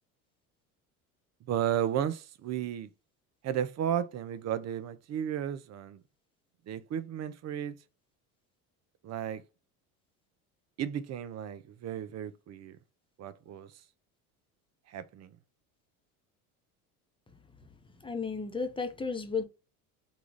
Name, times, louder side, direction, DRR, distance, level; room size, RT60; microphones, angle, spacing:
voice 1, 1.5-2.9 3.4-6.0 6.7-7.8 9.0-9.4 10.8-12.8 13.2-13.7 14.9-15.3, right 10 dB, 40° right, 0.6 m, -34 dB
voice 2, 18.0-19.4, left 5 dB, 10° left, 0.8 m, -33 dB
3.9 x 2.4 x 3.1 m
hypercardioid pair, 80°, 43 cm